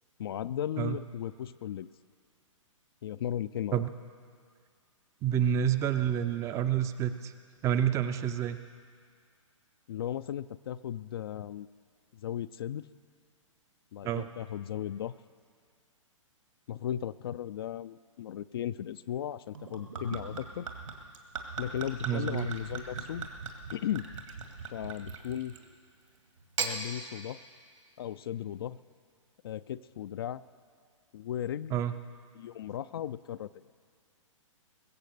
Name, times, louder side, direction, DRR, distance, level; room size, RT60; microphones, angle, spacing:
voice 1, 0.2-1.9 3.0-3.8 9.9-11.7 12.1-12.8 13.9-15.2 16.7-20.7 21.6-23.3 23.7-24.1 24.7-25.5 26.6-27.4 28.0-28.8 29.4-30.4 31.1-31.8 32.3-33.6, left 10 dB, 45° left, 14 dB, 0.4 m, -36 dB
voice 2, 5.2-7.3 7.6-8.6 14.0-14.2 22.1-22.5 31.7-31.9, right 9 dB, 15° right, 10 dB, 0.5 m, -28 dB
Gurgling / Chink clink / Liquid, 19.5-25.7 26.4-26.8, right 5 dB, 70° right, 2.1 m, -39 dB
21.5 x 7.6 x 6.8 m, 2.1 s
figure-of-eight pair, 120°, 17 cm